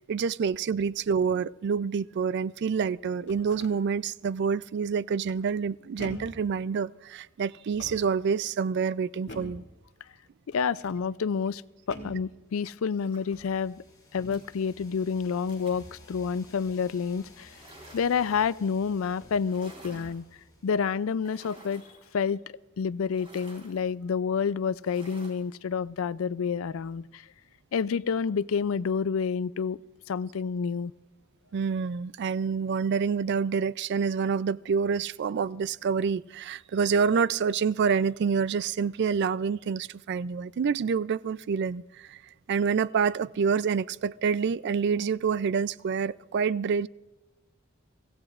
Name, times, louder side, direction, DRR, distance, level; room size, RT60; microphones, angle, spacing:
voice 1, 0.0-9.6 31.5-42.2 42.5-46.9, right 6 dB, 55° right, 0.3 m, -27 dB
sound 1, 3.2-3.8 5.2-5.7 6.0-6.5 7.6-8.2 9.3-9.7 10.5-11.0 11.9-12.3 13.2-13.6 14.2-14.5 15.7-16.0 18.1-18.2 19.1-19.4 19.8-20.2, left 1 dB, 60° left, 2.2 m, -45 dB
voice 2, 10.5-11.6 11.9-13.8 14.1-17.5 17.9-20.2 20.6-21.8 22.1-22.4 22.8-27.2 27.7-29.8 30.1-30.9, left 6 dB, 80° left, 0.4 m, -29 dB
sound 2, 12.7-21.4, left 1 dB, 20° left, 4.8 m, -56 dB
sound 3, 13.0-13.4 14.3-14.5 15.5-15.9 17.4-18.3 19.4-20.2 21.2-22.1 23.1-23.8 24.8-25.5, right 1 dB, 30° right, 3.5 m, -51 dB
24.5 x 16.0 x 2.5 m
head